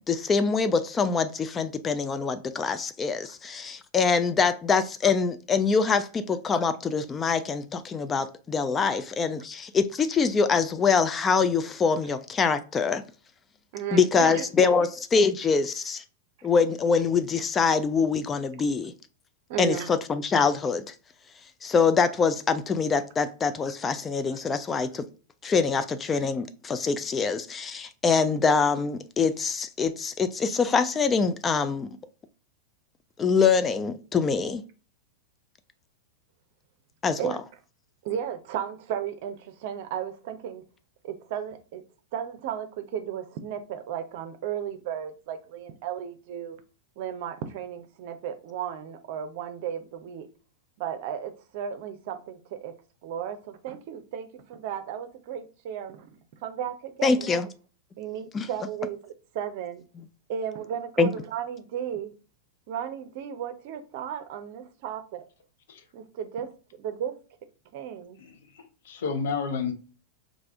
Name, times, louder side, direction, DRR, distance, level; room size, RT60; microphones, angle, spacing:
voice 1, 0.1-13.0 13.9-16.0 16.4-18.9 19.6-20.9 21.6-25.1 25.4-31.9 33.2-34.6 37.0-37.4 57.0-57.5 58.3-58.5 61.0-61.1, left 5 dB, 20° left, 0.3 m, -24 dB
voice 2, 13.7-14.7 19.5-19.9 37.2-37.4 38.0-40.6 41.0-41.8 42.1-46.6 47.0-50.3 50.8-52.7 53.0-56.2 56.4-57.3 58.0-59.8 60.3-62.1 62.7-65.2 65.9-66.5 66.8-67.1 67.7-68.2, right 9 dB, 55° right, 0.6 m, -34 dB
voice 3, 68.2-69.7, left 5 dB, 65° left, 0.6 m, -31 dB
3.3 x 2.5 x 3.5 m
hypercardioid pair, 95°, 0 cm